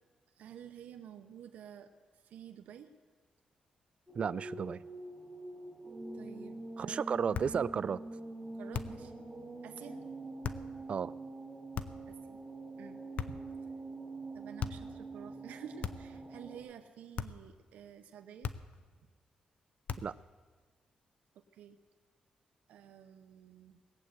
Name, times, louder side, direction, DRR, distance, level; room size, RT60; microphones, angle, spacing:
voice 1, 0.4-1.9 2.2-2.9 6.1-7.2 8.5-9.1 9.6-10.0 12.1-12.4 12.8-13.4 14.3-18.5 21.3-21.8 22.7-23.8, right 9 dB, 90° right, 7 dB, 0.8 m, -51 dB
sound 1, 4.1-16.6, right 2 dB, 15° right, 4.4 m, -45 dB
voice 2, 4.2-4.8 6.8-8.0 10.9-11.1 20.0-20.1, right 6 dB, 50° right, 19 dB, 0.4 m, -33 dB
sound 2, 7.3-7.6 8.7-9.1 10.4-10.7 11.7-12.1 13.2-13.6 14.6-14.9 15.8-16.2 17.2-17.5 18.4-18.8 19.9-20.2, left 7 dB, 65° left, 0.6 m, -39 dB
19.0 x 7.8 x 8.2 m, 1.5 s
cardioid pair, 95°, 3 cm